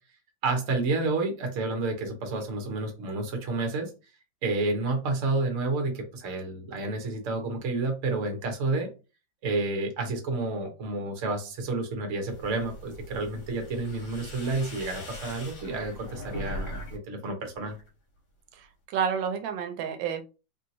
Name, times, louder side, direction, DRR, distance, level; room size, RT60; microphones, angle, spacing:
voice 1, 0.4-3.9 4.4-8.9 9.4-17.8, right 3 dB, 50° right, 3 dB, 1.0 m, -30 dB
sound 1, 12.3-17.0 17.3-17.9, left 1 dB, 65° left, 1.4 m, -40 dB
voice 2, 18.9-20.2, right 7 dB, 85° right, 7 dB, 1.3 m, -29 dB
3.1 x 2.7 x 2.6 m, 0.32 s
omnidirectional pair, 2.0 m